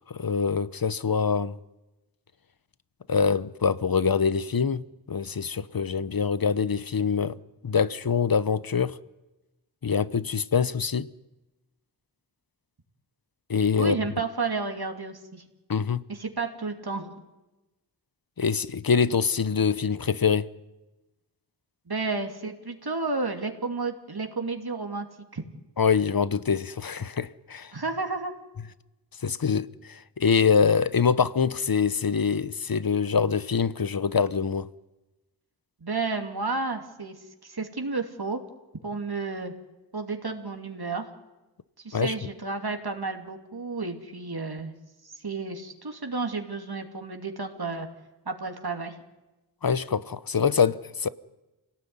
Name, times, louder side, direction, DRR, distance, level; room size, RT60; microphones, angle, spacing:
voice 1, 0.1-1.6 3.1-4.8 5.1-7.4 7.6-9.0 9.8-11.1 13.5-13.9 15.7-16.0 18.4-20.5 25.8-27.7 29.2-34.7 41.9-42.1 49.6-51.1, left 6 dB, 55° left, 0.9 m, -24 dB
voice 2, 13.8-15.4 16.1-17.2 21.9-25.1 25.3-25.4 27.7-28.3 35.8-37.1 37.4-38.4 38.8-39.5 39.9-41.1 41.8-44.7 45.0-47.9 48.3-48.9, right 3 dB, 65° right, 2.7 m, -31 dB
27.0 x 18.0 x 9.6 m
wide cardioid pair, 45°, 41 cm